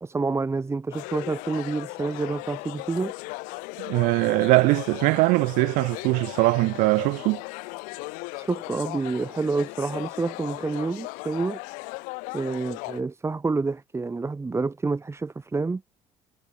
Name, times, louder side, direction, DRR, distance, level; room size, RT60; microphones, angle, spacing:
voice 1, 0.0-3.1 8.3-11.6 12.3-15.8, right 3 dB, 20° right, 2.7 m, -28 dB
sound 1, 0.9-13.0, left 29 dB, 90° left, 2.3 m, -37 dB
voice 2, 3.8-7.4, right 24 dB, 85° right, 4.0 m, -21 dB
cardioid pair, 95°, 13 cm